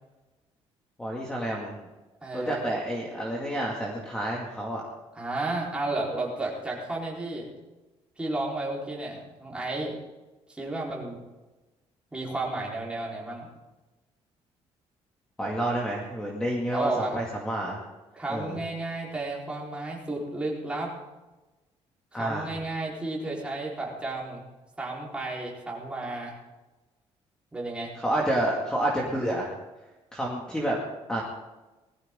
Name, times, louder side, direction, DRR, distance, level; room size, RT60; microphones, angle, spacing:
voice 1, 1.0-1.8 2.3-4.8 15.4-17.8 18.3-18.6 22.1-22.5 28.0-29.5 30.1-30.8 31.1-31.2, right 1 dB, 5° left, -2 dB, 2.2 m, -29 dB
voice 2, 2.2-2.6 5.1-7.5 8.2-9.9 10.5-11.2 12.1-13.5 16.7-17.2 18.1-20.9 22.1-24.4 24.8-26.4 27.5-27.9, right 2 dB, 10° right, -4 dB, 4.2 m, -32 dB
20.0 x 14.0 x 3.8 m, 1.1 s
cardioid pair, 165°, 11 cm